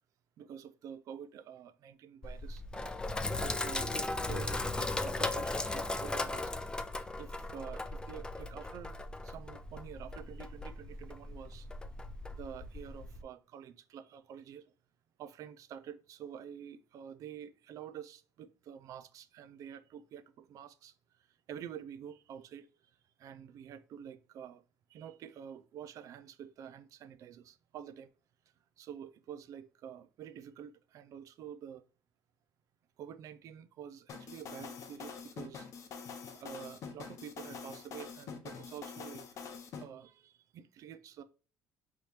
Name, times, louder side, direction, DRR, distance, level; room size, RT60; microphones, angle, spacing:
voice 1, 0.4-2.6 3.0-6.6 7.2-8.9 9.2-11.7 12.4-14.6 15.2-20.9 21.5-22.7 23.2-24.6 24.9-28.1 28.8-31.8 33.0-35.7 36.3-39.3 39.7-41.2, right 9 dB, 55° right, 0.5 m, -48 dB
Sink (filling or washing), 2.2-13.2, left 2 dB, 15° left, 0.3 m, -37 dB
sound 1, 34.1-39.8, left 6 dB, 55° left, 0.8 m, -45 dB
4.7 x 2.8 x 3.4 m
cardioid pair, 115°, 7 cm